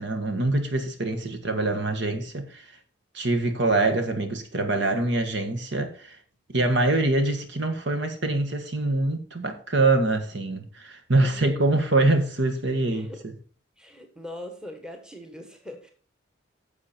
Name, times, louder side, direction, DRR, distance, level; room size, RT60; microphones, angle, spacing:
voice 1, 0.0-2.7 3.1-6.2 6.5-13.3, right 2 dB, 60° right, 1.6 m, -24 dB
voice 2, 10.1-10.4 11.2-11.7 12.9-13.3 13.8-15.9, left 1 dB, 5° right, 1.3 m, -42 dB
11.0 x 7.0 x 4.4 m
head